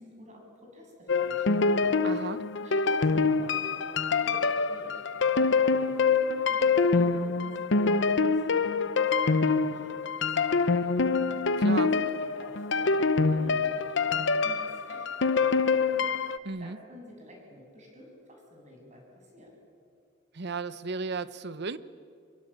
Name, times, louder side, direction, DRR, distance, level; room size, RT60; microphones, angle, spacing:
voice 1, 0.0-1.9 2.6-11.4 12.2-16.1 16.6-19.5, equal, 40° right, 1 dB, 7.4 m, -50 dB
sound 1, 1.1-16.4, left 4 dB, 65° left, 0.8 m, -25 dB
voice 2, 2.0-2.4 11.6-12.0 16.4-16.8 20.3-21.8, right 4 dB, 60° right, 15 dB, 0.9 m, -34 dB
26.0 x 23.0 x 8.8 m, 2.3 s
head